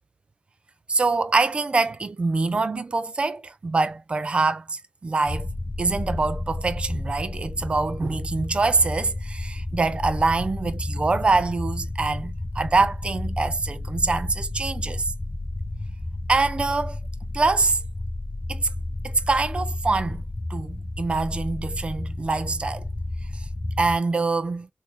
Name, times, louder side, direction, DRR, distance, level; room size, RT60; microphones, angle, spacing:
voice 1, 0.9-5.5 5.8-15.1 16.3-17.0 17.3-17.8 18.5-18.7 19.0-20.2 20.5-22.8 23.3-23.5 23.8-24.7, right 3 dB, 40° right, 0.4 m, -24 dB
sound 1, 5.3-24.0, left 2 dB, 25° left, 0.6 m, -32 dB
3.6 x 2.6 x 2.9 m
wide cardioid pair, 125°, 3 cm